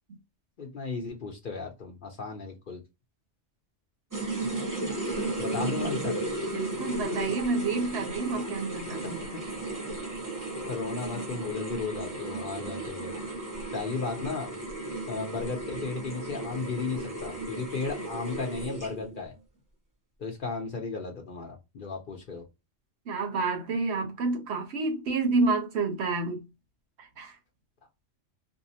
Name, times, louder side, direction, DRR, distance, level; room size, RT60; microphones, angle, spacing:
voice 1, 0.6-2.8 5.4-6.2 9.0-9.4 10.6-13.1 13.7-14.5 15.1-19.3 20.2-22.4, left 4 dB, 50° left, 0.7 m, -35 dB
sound 1, 4.1-19.2, right 2 dB, 20° right, 0.7 m, -35 dB
voice 2, 6.5-9.0 23.1-26.4 27.0-27.4, right 3 dB, 65° right, 0.9 m, -29 dB
2.6 x 2.0 x 2.7 m
omnidirectional pair, 1.3 m